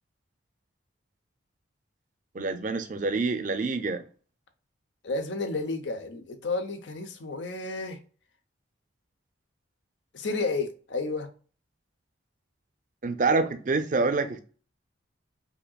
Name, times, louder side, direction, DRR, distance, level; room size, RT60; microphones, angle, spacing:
voice 1, 2.3-4.0 13.0-14.4, right 3 dB, 40° right, 0.5 m, -26 dB
voice 2, 5.0-8.0 10.1-11.3, left 3 dB, 70° left, 0.7 m, -31 dB
5.1 x 2.8 x 2.3 m
head